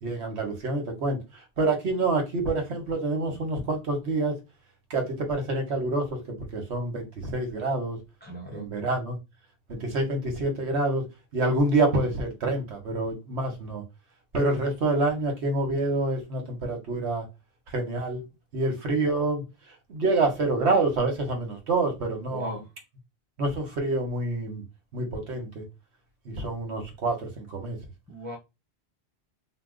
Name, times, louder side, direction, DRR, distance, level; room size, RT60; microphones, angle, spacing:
voice 1, 0.0-4.3 4.9-6.2 6.5-8.0 8.5-9.2 9.7-11.1 11.3-13.8 14.3-17.2 17.7-18.2 18.5-19.4 19.9-22.6 23.4-24.6 24.9-25.6 26.2-27.8, right 2 dB, 80° right, 1.2 m, -27 dB
voice 2, 8.2-8.7 22.3-22.6 28.1-28.4, left 1 dB, 10° left, 0.6 m, -37 dB
2.9 x 2.1 x 3.7 m
omnidirectional pair, 1.1 m